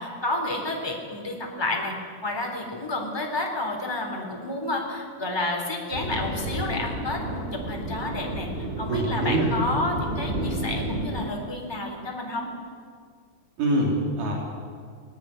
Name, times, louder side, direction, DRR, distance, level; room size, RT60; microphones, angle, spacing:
voice 1, 0.0-1.9 2.2-12.5, left 2 dB, 10° left, 0 dB, 3.4 m, -30 dB
sound 1, 5.9-11.3, right 1 dB, 20° right, 2.2 m, -31 dB
voice 2, 8.9-9.5 13.6-14.3, right 1 dB, 85° right, -2 dB, 4.7 m, -24 dB
20.0 x 18.0 x 9.7 m, 2.1 s
omnidirectional pair, 3.6 m